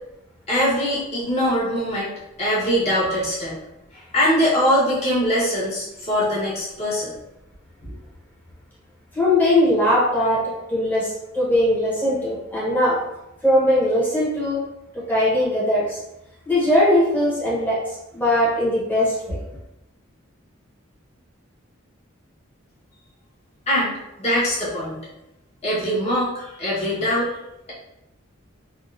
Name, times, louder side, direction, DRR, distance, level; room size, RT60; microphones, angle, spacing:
voice 1, 0.5-3.6 3.9-7.1 23.7-25.0 25.6-27.3, equal, 30° left, -9 dB, 1.2 m, -22 dB
voice 2, 9.1-13.0 13.4-14.6 14.9-16.0 16.5-19.4, left 1 dB, 10° left, -7 dB, 1.0 m, -20 dB
3.5 x 2.4 x 2.6 m, 0.89 s
head